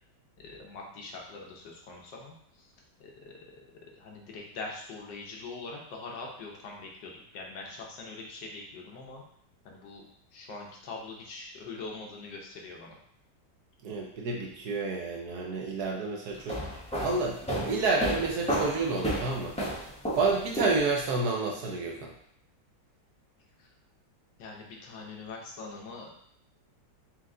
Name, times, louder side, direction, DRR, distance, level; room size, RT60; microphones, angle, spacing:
voice 1, 0.4-2.7 3.0-3.4 3.9-9.2 9.6-10.0 10.3-13.0 23.6-23.7 24.4-26.1, left 3 dB, 75° left, -1 dB, 1.5 m, -43 dB
voice 2, 13.8-19.6 20.2-22.1, right 3 dB, 65° right, 0 dB, 1.1 m, -30 dB
sound 1, 16.3-21.2, right 1 dB, 10° left, 0.3 m, -32 dB
4.5 x 2.5 x 3.7 m, 0.67 s
omnidirectional pair, 2.0 m